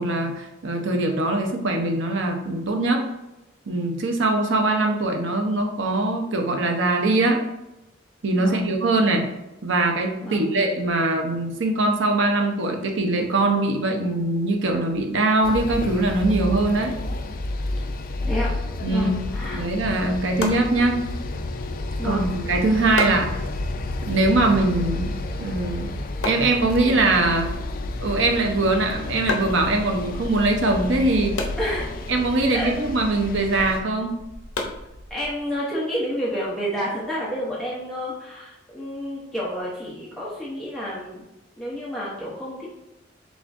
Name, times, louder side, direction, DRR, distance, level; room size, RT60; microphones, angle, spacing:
voice 1, 0.0-3.0 3.7-7.4 8.2-9.3 9.6-17.0 18.8-19.1 19.5-21.0 22.0-23.4 24.1-25.1 25.4-25.9 26.2-27.5 28.0-31.4 32.1-34.2, right 2 dB, 70° right, 3 dB, 0.7 m, -22 dB
voice 2, 8.4-8.7 10.2-10.5 18.3-18.5 18.9-19.6 22.0-22.3 31.6-31.9 32.5-32.7 35.1-41.2 41.6-42.7, equal, ahead, -7 dB, 0.7 m, -29 dB
sound 1, 15.4-33.8, left 2 dB, 45° left, 0.3 m, -31 dB
sound 2, 20.3-35.6, left 2 dB, 75° left, 0.7 m, -36 dB
7.0 x 2.4 x 2.5 m, 0.94 s
head